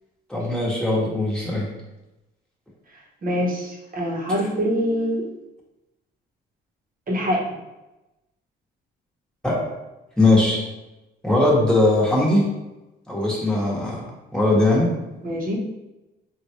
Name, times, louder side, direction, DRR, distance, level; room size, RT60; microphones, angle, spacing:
voice 1, 0.3-1.6 9.4-9.6 10.2-10.6 11.2-12.4 13.1-14.0 14.3-14.9, left 2 dB, 5° left, -5 dB, 1.1 m, -19 dB
voice 2, 3.2-5.2 7.1-7.4 15.2-15.6, equal, 45° right, -2 dB, 0.9 m, -24 dB
3.9 x 2.3 x 2.9 m, 1.0 s
cardioid pair, 90°, 20 cm